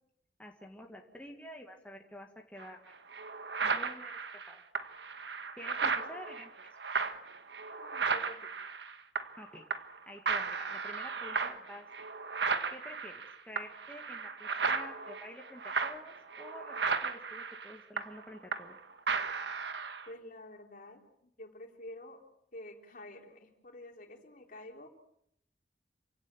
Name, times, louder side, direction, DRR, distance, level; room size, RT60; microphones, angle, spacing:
voice 1, 0.4-3.0 3.6-4.2 4.5-4.6 5.6-6.7 9.4-9.7 10.1-12.1 12.7-18.8, left 1 dB, 10° left, 1 dB, 2.0 m, -49 dB
sound 1, 2.6-2.7 3.1-9.4 9.7-10.0 10.3-18.8 19.1-20.1, right 5 dB, 75° right, 1.5 m, -35 dB
voice 2, 7.7-8.5 20.1-22.2 22.5-24.9, left 1 dB, 50° left, 3 dB, 3.7 m, -49 dB
28.5 x 17.0 x 7.6 m, 0.74 s
head